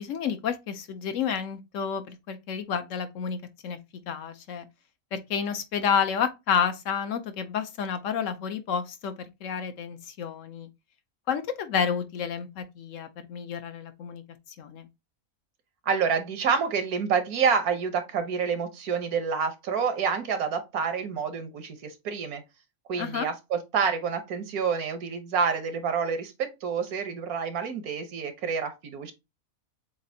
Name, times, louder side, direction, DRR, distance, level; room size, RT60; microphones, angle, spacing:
voice 1, 0.0-3.8 4.1-4.7 5.1-10.7 11.3-14.2 14.6-14.9 23.0-23.3, left 7 dB, 65° left, 0.9 m, -30 dB
voice 2, 15.9-22.4 22.9-29.1, right 6 dB, 85° right, 1.4 m, -28 dB
7.2 x 2.5 x 2.7 m
omnidirectional pair, 1.5 m